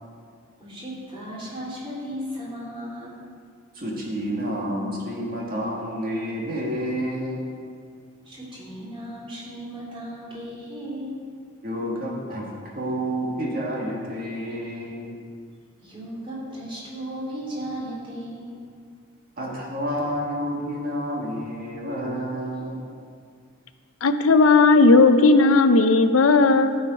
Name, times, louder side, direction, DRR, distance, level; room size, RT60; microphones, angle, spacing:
voice 1, 0.6-3.1 8.2-11.2 15.8-18.6, equal, 25° right, -4 dB, 2.8 m, -35 dB
voice 2, 3.7-7.5 11.6-12.5 12.7-15.2 19.4-22.9, equal, 45° right, -3 dB, 1.9 m, -29 dB
voice 3, 24.0-26.8, left 3 dB, 75° left, 9 dB, 0.5 m, -15 dB
12.0 x 7.3 x 5.3 m, 2.1 s
head